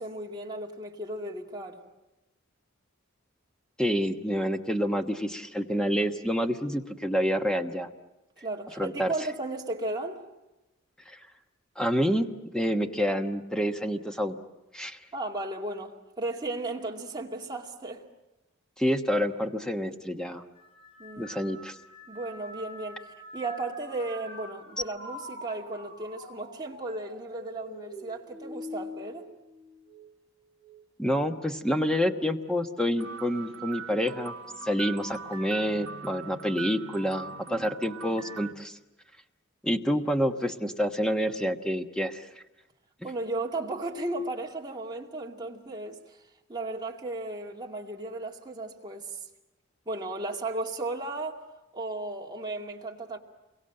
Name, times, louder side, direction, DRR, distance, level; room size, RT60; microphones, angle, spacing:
voice 1, 0.0-1.8 8.4-10.2 15.1-18.0 21.0-21.4 22.1-29.3 37.5-37.7 43.0-46.2 46.5-49.2 49.9-51.4 51.7-53.2, right 2 dB, 20° right, 2.3 m, -35 dB
voice 2, 3.8-7.9 8.8-9.1 11.1-11.2 11.8-12.3 12.5-14.4 14.7-15.0 18.8-20.4 21.2-21.7 31.0-34.3 34.6-38.8 39.6-42.3, equal, 5° left, 1.2 m, -28 dB
sound 1, 20.5-30.2 30.6-31.2 32.2-32.5, left 1 dB, 25° left, 6.7 m, -45 dB
sound 2, 33.0-38.5, right 6 dB, 75° right, 1.2 m, -41 dB
28.5 x 23.5 x 7.8 m
head